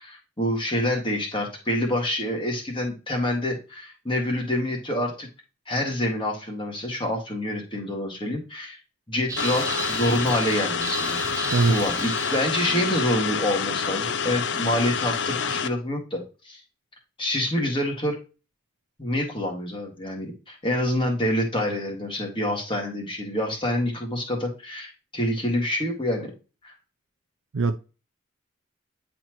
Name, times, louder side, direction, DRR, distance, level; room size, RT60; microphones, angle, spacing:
voice 1, 0.0-5.3 5.7-8.8 9.1-11.2 11.7-16.6 17.2-18.2 19.0-26.3 26.6-26.7, left 1 dB, 25° left, 1.8 m, -27 dB
sound 1, 9.3-13.0, right 4 dB, 15° right, 0.3 m, -34 dB
sound 2, 9.4-15.7, left 6 dB, 60° left, 0.5 m, -28 dB
voice 2, 11.5-11.9 27.5-27.8, right 3 dB, 75° right, 0.5 m, -21 dB
10.0 x 4.3 x 3.0 m
head